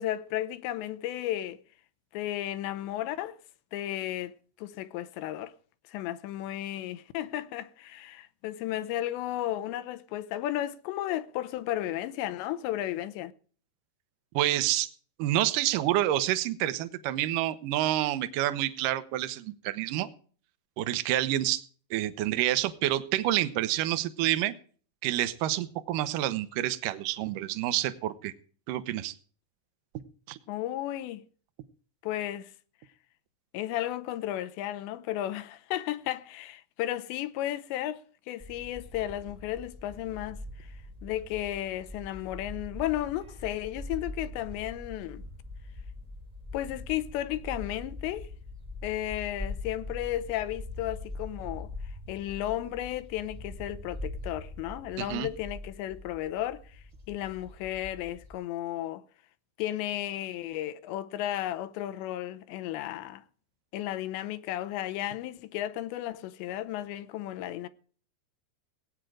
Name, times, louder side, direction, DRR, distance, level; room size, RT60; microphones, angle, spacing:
voice 1, 0.0-1.6 2.1-3.4 3.7-5.5 5.9-13.3 30.5-31.2 32.0-32.5 33.5-40.7 41.0-45.2 46.5-48.3 48.8-51.7 52.1-59.0 59.6-63.2 63.7-67.7, left 13 dB, 80° left, 3.0 m, -34 dB
voice 2, 14.3-14.9 15.2-20.1 20.8-21.6 21.9-24.5 25.0-28.3 28.7-29.1 30.3-30.4 55.0-55.3, right 14 dB, 75° right, 2.0 m, -28 dB
sound 1, 38.4-58.4, left 2 dB, 20° right, 1.0 m, -42 dB
18.0 x 9.1 x 4.9 m
omnidirectional pair, 5.1 m